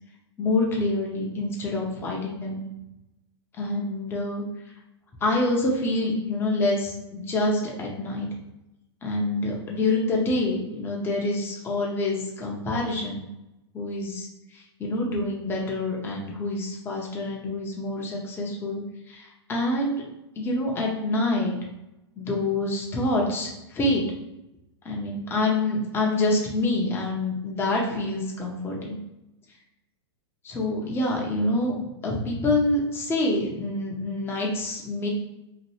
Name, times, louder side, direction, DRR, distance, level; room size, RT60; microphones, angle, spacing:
voice 1, 0.4-2.6 3.6-4.4 5.2-8.3 9.0-13.2 13.7-14.3 14.5-20.0 20.4-21.5 22.2-24.0 24.8-29.0 30.4-35.1, left 2 dB, 15° left, -2 dB, 0.6 m, -26 dB
2.9 x 2.6 x 2.9 m, 0.92 s
figure-of-eight pair, 100°, 15 cm